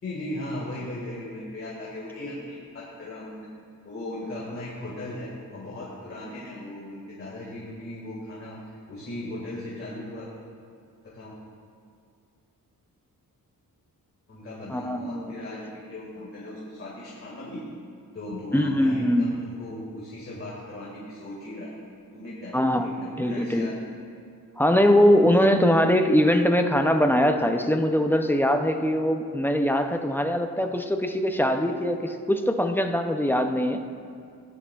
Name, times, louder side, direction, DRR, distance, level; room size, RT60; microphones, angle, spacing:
voice 1, 0.0-3.5 3.8-10.3 11.0-11.3 14.3-17.7 18.1-21.7 22.1-23.7, left 1 dB, 35° left, -6 dB, 1.8 m, -38 dB
voice 2, 14.7-15.3 18.5-19.3 22.5-22.9 23.2-23.7 24.6-33.8, equal, 5° left, 5 dB, 0.4 m, -22 dB
17.0 x 9.8 x 2.3 m, 2.3 s
wide cardioid pair, 175°, 37 cm